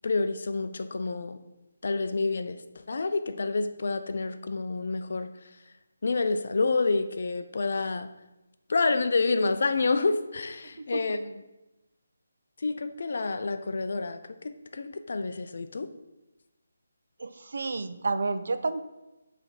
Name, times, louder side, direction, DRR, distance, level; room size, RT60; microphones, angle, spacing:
voice 1, 0.0-1.4 1.8-5.3 6.0-8.1 8.7-11.3 12.6-15.9, left 3 dB, 60° left, 10 dB, 0.5 m, -28 dB
voice 2, 10.6-11.0 17.2-18.8, right 3 dB, 65° right, 11 dB, 0.4 m, -31 dB
7.2 x 3.3 x 4.0 m, 1.0 s
figure-of-eight pair, 160°, 0 cm